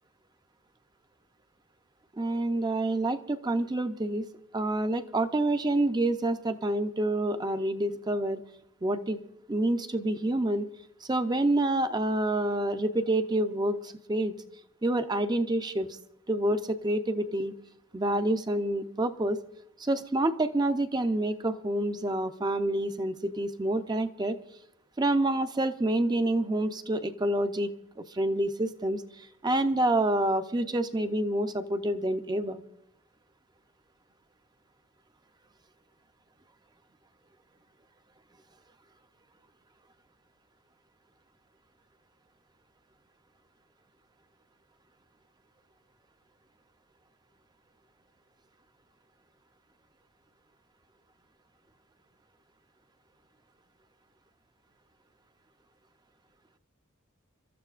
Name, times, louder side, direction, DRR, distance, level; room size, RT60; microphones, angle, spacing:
voice 1, 2.2-4.2 4.5-8.4 8.8-9.2 9.5-10.7 11.0-14.3 14.8-16.0 16.3-17.5 17.9-19.4 19.8-24.4 25.0-32.6, right 1 dB, 20° right, 9 dB, 0.6 m, -28 dB
29.0 x 13.5 x 2.5 m, 0.75 s
head